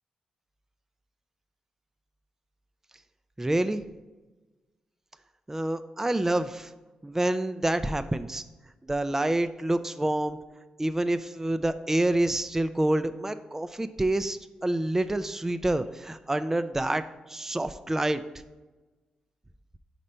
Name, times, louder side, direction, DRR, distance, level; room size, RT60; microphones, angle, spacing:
voice 1, 3.4-3.8 5.5-6.7 7.0-8.4 8.9-10.4 10.8-17.0 17.3-18.2, right 1 dB, 15° right, 10 dB, 0.3 m, -27 dB
5.0 x 4.3 x 5.3 m, 1.2 s
supercardioid pair, 45°, 3 cm